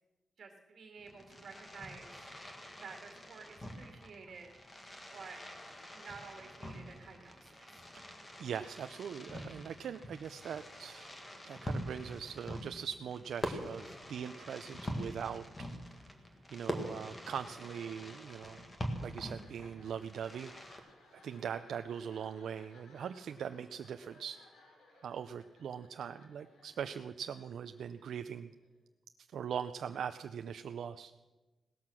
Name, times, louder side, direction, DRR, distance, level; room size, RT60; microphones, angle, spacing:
voice 1, 0.4-2.1 2.7-4.5 5.1-5.4 5.9-7.7, right 5 dB, 45° right, 4 dB, 2.0 m, -51 dB
Fireworks, 1.0-20.8, equal, 20° left, 1.7 m, -45 dB
voice 2, 8.0-15.4 16.5-18.7 19.0-20.9 21.2-24.4 25.0-28.5 29.3-31.1, right 8 dB, 65° right, 9 dB, 0.5 m, -41 dB
sound 1, 17.2-28.8, left 2 dB, 85° left, 3.4 m, -64 dB
17.5 x 13.5 x 6.2 m, 1.1 s
wide cardioid pair, 175°, 0 cm